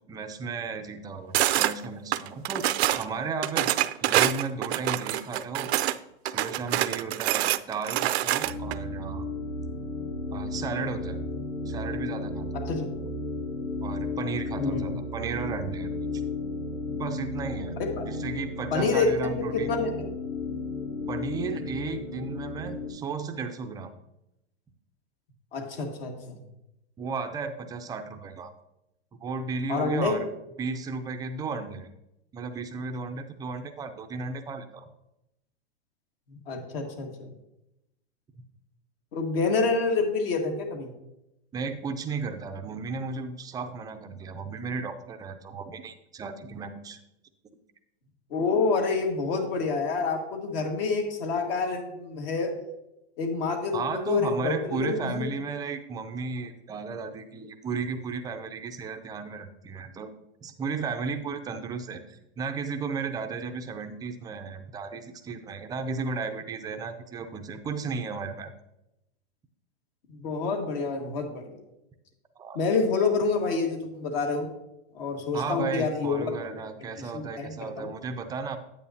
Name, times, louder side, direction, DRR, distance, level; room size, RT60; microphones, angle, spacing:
voice 1, 0.1-3.7 4.0-5.7 6.2-9.3 10.3-11.2 11.7-12.5 13.8-15.9 16.9-17.8 18.1-19.7 21.1-23.9 27.0-28.5 29.2-30.3 30.6-31.9 32.3-34.8 41.5-47.0 53.7-60.1 60.4-68.5 72.4-72.6 75.3-78.6, right 4 dB, 10° right, 7 dB, 0.4 m, -34 dB
sound 1, 1.3-1.7 2.1-3.1 3.4-6.0 6.3-8.8, right 13 dB, 70° right, 0.5 m, -25 dB
sound 2, 8.4-22.9, left 3 dB, 75° left, 3.2 m, -34 dB
voice 2, 12.5-12.9 14.6-14.8 17.8-18.0 18.7-20.1 25.5-26.4 29.7-30.1 36.3-37.3 39.1-40.9 48.3-52.5 53.2-55.3 70.1-71.6 72.5-74.5 74.9-76.3 76.9-77.9, left 4 dB, 55° left, 3 dB, 1.7 m, -28 dB
9.3 x 8.3 x 2.7 m, 0.88 s
hypercardioid pair, 125°, 34 cm